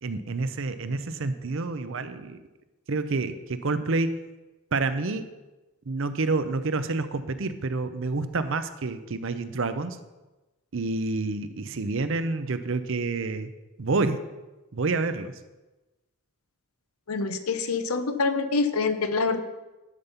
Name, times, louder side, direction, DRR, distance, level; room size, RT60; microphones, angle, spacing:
voice 1, 0.0-2.4 2.9-4.1 4.7-5.3 5.9-10.0 10.7-13.5 13.8-14.3 14.7-15.4, right 3 dB, 60° right, 11 dB, 0.6 m, -28 dB
voice 2, 17.1-19.4, left 4 dB, 80° left, 10 dB, 0.8 m, -26 dB
12.0 x 5.3 x 5.6 m, 1.1 s
head